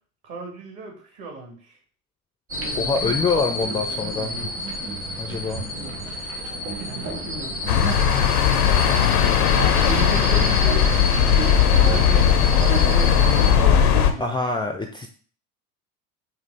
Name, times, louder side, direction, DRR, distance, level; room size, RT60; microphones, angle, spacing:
voice 1, 0.2-1.8 3.1-3.7 5.3-5.9 6.8-7.5 9.6-11.5 11.8-12.2 12.5-13.3 13.6-14.6, right 3 dB, 50° right, 1 dB, 2.0 m, -35 dB
sound 1, 2.5-13.5, left 1 dB, 90° right, 2.1 m, -30 dB
sound 2, 2.6-14.0, right 3 dB, 35° right, 1.2 m, -36 dB
voice 2, 2.8-4.3 5.2-5.6 10.1-10.3 14.2-15.1, left 4 dB, 10° left, 5 dB, 0.4 m, -25 dB
sound 3, 7.7-14.1, left 8 dB, 85° left, 0.6 m, -18 dB
5.4 x 2.4 x 4.0 m, 0.44 s
hypercardioid pair, 65°, 43 cm